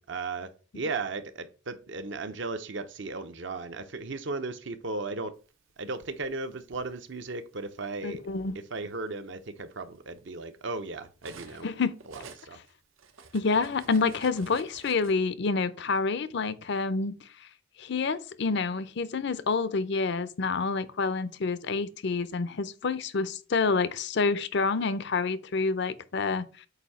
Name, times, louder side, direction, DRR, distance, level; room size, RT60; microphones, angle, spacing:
voice 1, 0.0-5.4 5.8-8.2 8.7-11.7 12.1-12.6, right 3 dB, 60° right, 0.7 m, -36 dB
Cutlery silverware, 5.6-6.9 7.8-8.0 8.4-11.7 12.0-15.1, right 4 dB, 85° right, 1.0 m, -51 dB
voice 2, 8.0-8.6 11.6-11.9 13.3-17.2 17.8-26.7, left 4 dB, 60° left, 0.5 m, -28 dB
8.1 x 2.7 x 5.6 m
head